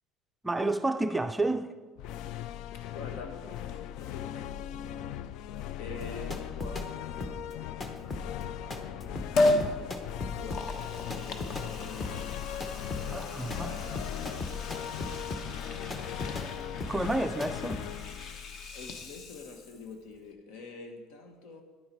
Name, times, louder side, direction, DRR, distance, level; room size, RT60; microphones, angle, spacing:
voice 1, 0.4-1.8 13.1-13.8 16.9-17.8, right 2 dB, 10° right, 0.4 m, -30 dB
sound 1, 2.0-19.4, left 11 dB, 65° left, 0.3 m, -39 dB
voice 2, 2.2-5.3 5.7-9.0 9.3-12.3 13.0-15.1 15.6-16.5 18.7-21.6, left 4 dB, 80° left, 1.6 m, -47 dB
sound 2, 5.9-6.9 7.2-16.5 16.8-17.1 17.4-17.8, left 2 dB, 20° left, 0.9 m, -39 dB
Liquid, 9.4-9.7 10.3-19.9 20.2-20.3, left 2 dB, 50° left, 1.1 m, -34 dB
10.0 x 9.5 x 4.6 m
cardioid pair, 150°, 0 cm